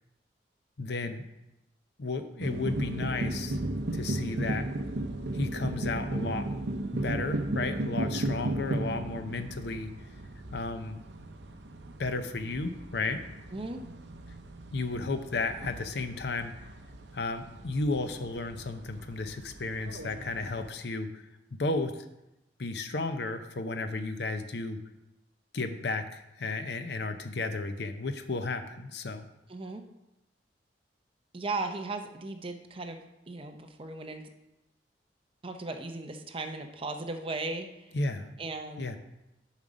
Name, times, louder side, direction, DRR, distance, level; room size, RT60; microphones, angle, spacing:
voice 1, 0.8-1.2 2.0-3.6 3.9-4.7 5.3-6.5 6.9-9.9 10.5-11.0 12.0-13.2 14.7-16.5 17.1-21.2 21.5-22.0 22.6-24.8 25.5-29.3 37.9-38.3 38.8-39.0, left 3 dB, 65° left, 8 dB, 0.7 m, -33 dB
sound 1, 2.4-20.7, right 1 dB, 75° right, 0.7 m, -36 dB
voice 2, 29.5-29.8 31.3-33.0 33.3-34.2 35.4-37.9 38.4-38.9, right 3 dB, 30° right, 6 dB, 0.6 m, -36 dB
7.3 x 5.4 x 5.0 m, 0.93 s
head